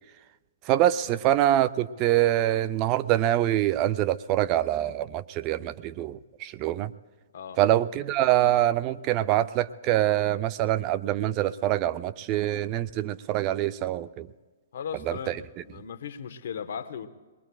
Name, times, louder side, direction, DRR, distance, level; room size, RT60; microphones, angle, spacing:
voice 1, 0.7-6.9 7.6-14.3 15.1-15.4, right 13 dB, 35° right, 15 dB, 0.4 m, -25 dB
voice 2, 14.7-17.1, left 7 dB, 65° left, 10 dB, 1.1 m, -37 dB
23.0 x 21.0 x 2.3 m, 1.3 s
hypercardioid pair, 135°, 0 cm